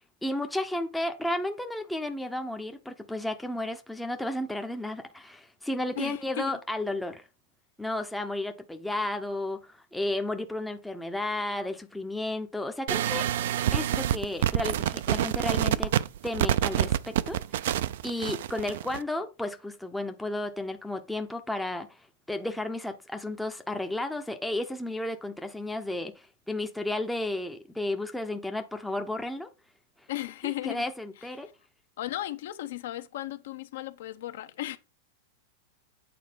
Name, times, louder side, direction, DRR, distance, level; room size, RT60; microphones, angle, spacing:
voice 1, 0.2-7.2 7.8-13.3 13.7-15.9 16.2-17.4 18.0-22.0 22.3-29.5 30.4-31.5, left 1 dB, 5° left, 0.6 m, -33 dB
voice 2, 5.9-6.6 30.1-30.8 32.0-34.8, left 15 dB, 70° left, 0.9 m, -35 dB
sound 1, 12.9-19.0, right 11 dB, 70° right, 0.5 m, -27 dB
8.5 x 4.3 x 5.1 m
supercardioid pair, 155°, 0 cm